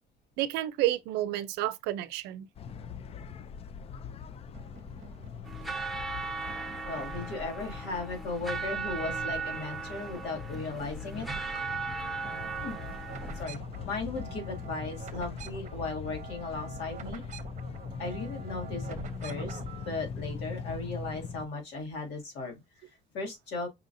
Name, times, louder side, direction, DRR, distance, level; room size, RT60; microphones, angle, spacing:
voice 1, 0.4-2.5, right 14 dB, 90° right, 0.5 m, -30 dB
sound 1, 2.6-21.5, left 6 dB, 35° left, 0.3 m, -41 dB
sound 2, 4.5-6.0 6.5-8.1 8.4-9.7 10.0-19.9, right 7 dB, 45° right, 0.8 m, -47 dB
sound 3, 5.5-13.4, right 5 dB, ahead, 0.9 m, -37 dB
voice 2, 6.8-11.3 12.6-12.8 13.3-13.6 13.8-17.2 18.0-19.6 19.9-22.6 23.1-23.7, left 3 dB, 85° left, 1.9 m, -36 dB
5.5 x 2.6 x 2.6 m
cardioid pair, 110°, 17 cm